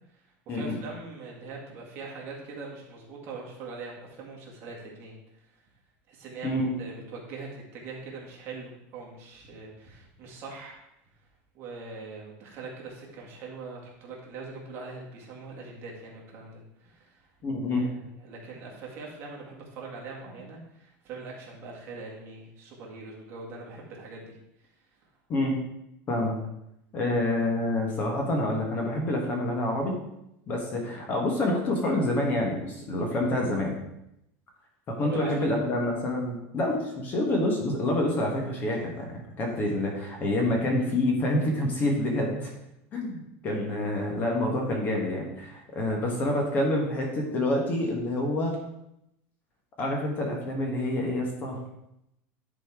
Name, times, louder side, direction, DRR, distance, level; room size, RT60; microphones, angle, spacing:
voice 1, 0.5-5.2 5.5-5.6 6.1-10.8 11.5-17.3 17.7-24.4 35.0-35.5, right 4 dB, 35° right, -2 dB, 2.0 m, -42 dB
voice 2, 6.4-6.7 17.4-17.8 25.3-25.5 26.1-26.4 26.9-30.0 30.5-33.8 34.9-42.5 42.9-48.6 49.8-51.6, left 1 dB, 25° left, 1 dB, 1.3 m, -27 dB
10.5 x 4.3 x 4.7 m, 0.81 s
cardioid pair, 175°, 7 cm